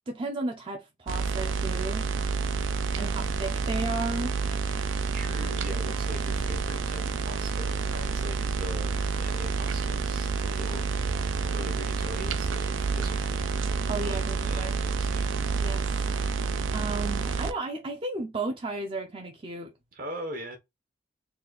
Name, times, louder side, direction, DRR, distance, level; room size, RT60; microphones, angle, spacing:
voice 1, 0.1-2.1 3.0-4.3 13.9-14.8 15.6-15.9 16.7-19.7, right 2 dB, 30° right, 0.6 m, -34 dB
sound 1, 1.1-17.5, right 5 dB, 85° right, 0.5 m, -29 dB
voice 2, 5.1-10.9 11.2-13.5 14.0-15.3 19.9-20.6, equal, 50° right, 1.2 m, -41 dB
4.0 x 2.4 x 4.1 m
head